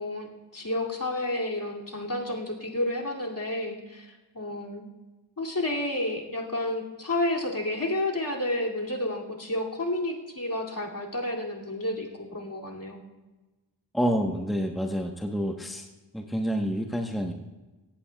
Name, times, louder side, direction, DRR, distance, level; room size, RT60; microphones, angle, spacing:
voice 1, 0.0-4.9 5.4-13.0, left 1 dB, 50° left, -2 dB, 2.6 m, -31 dB
voice 2, 13.9-15.9 16.1-17.3, equal, ahead, 2 dB, 1.1 m, -28 dB
18.0 x 15.5 x 2.3 m, 1.2 s
wide cardioid pair, 50°, 43 cm